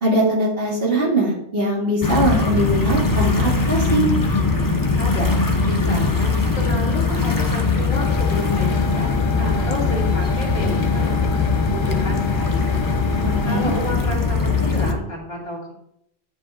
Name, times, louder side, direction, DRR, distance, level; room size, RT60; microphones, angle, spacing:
voice 1, 0.0-4.1 13.2-13.7, right 1 dB, 50° right, -5 dB, 2.4 m, -21 dB
sound 1, 2.0-14.9, left 4 dB, 20° left, 0.6 m, -20 dB
voice 2, 5.0-12.9 13.4-15.7, equal, 50° left, -2 dB, 2.7 m, -31 dB
samsung laser printer clog, 7.9-13.9, left 5 dB, 80° left, 1.3 m, -32 dB
9.2 x 5.2 x 3.7 m, 0.75 s
omnidirectional pair, 1.3 m